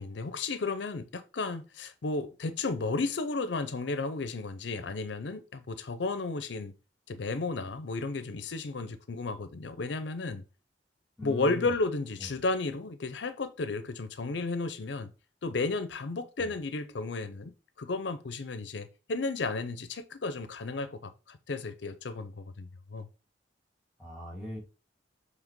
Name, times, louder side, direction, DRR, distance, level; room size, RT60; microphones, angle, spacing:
voice 1, 0.0-6.7 7.1-10.4 11.2-15.1 15.4-17.5 17.8-23.1, left 3 dB, 70° left, 0.6 m, -33 dB
voice 2, 11.2-11.7 12.2-12.3 16.4-16.5 24.0-24.6, left 1 dB, 5° right, 2.9 m, -40 dB
7.2 x 3.4 x 5.2 m
head